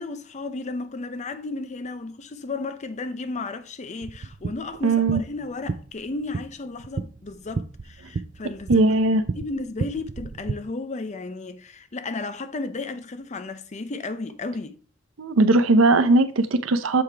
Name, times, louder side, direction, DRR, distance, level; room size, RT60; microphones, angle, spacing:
voice 1, 0.0-8.8 9.3-14.8, left 3 dB, 35° left, 0.6 m, -34 dB
sound 1, 4.0-10.5, right 4 dB, 40° right, 0.4 m, -33 dB
voice 2, 4.8-5.2 8.7-9.2 15.2-17.0, right 2 dB, 90° right, 0.7 m, -19 dB
7.2 x 4.9 x 3.4 m
head